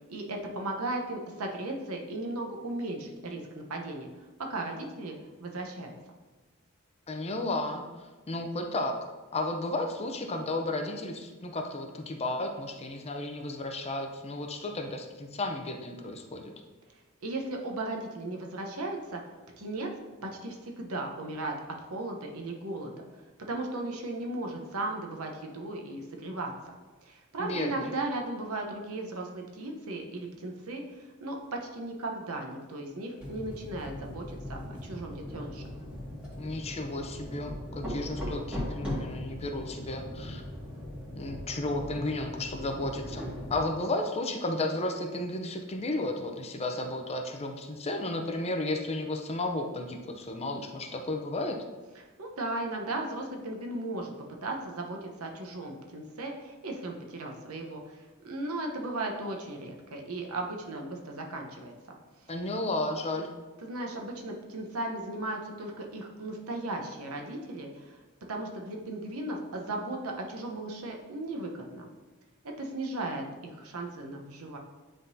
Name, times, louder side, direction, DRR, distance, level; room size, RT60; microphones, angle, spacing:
voice 1, 0.1-4.1 4.5-5.9 17.2-19.2 19.6-19.9 20.2-23.1 23.5-26.7 27.0-35.6 51.9-54.1 54.4-58.0 58.2-62.0 63.6-68.0 68.3-71.9 72.4-74.6, right 2 dB, 80° right, 1 dB, 0.9 m, -36 dB
voice 2, 7.1-7.8 8.3-9.0 9.3-16.4 27.4-27.9 36.4-40.4 41.1-43.2 43.5-51.6 62.3-63.3, left 2 dB, 30° left, 4 dB, 0.6 m, -33 dB
sound 1, 33.2-43.6, left 1 dB, 5° right, 1.9 m, -39 dB
9.8 x 3.7 x 2.7 m, 1.3 s
head